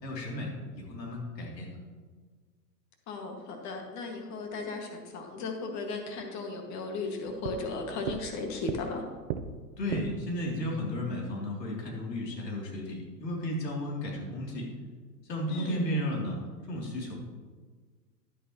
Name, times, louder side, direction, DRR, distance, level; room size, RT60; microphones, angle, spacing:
voice 1, 0.0-1.8 9.8-14.7 15.3-16.4 16.7-17.1, left 1 dB, 80° left, -2 dB, 3.2 m, -33 dB
voice 2, 3.1-9.0 15.5-15.8, left 3 dB, 35° left, 2 dB, 2.0 m, -36 dB
sound 1, 7.3-10.4, right 8 dB, 45° right, 0.8 m, -38 dB
11.0 x 9.9 x 3.1 m, 1.5 s
hypercardioid pair, 110°, 49 cm